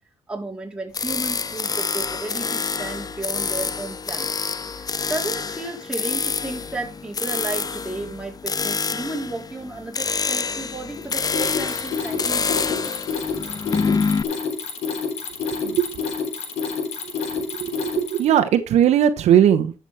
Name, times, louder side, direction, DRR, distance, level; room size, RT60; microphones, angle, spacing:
voice 1, 0.3-4.4 4.7-13.0, right 2 dB, 10° right, 4.1 m, -33 dB
sound 1, 0.9-14.2, left 5 dB, 35° left, 0.6 m, -27 dB
Mechanisms, 10.9-18.4, left 5 dB, 80° left, 3.9 m, -28 dB
voice 2, 15.6-16.0 17.0-17.1 17.4-19.7, right 10 dB, 75° right, 1.0 m, -19 dB
12.0 x 7.1 x 3.5 m
cardioid pair, 70°, 11 cm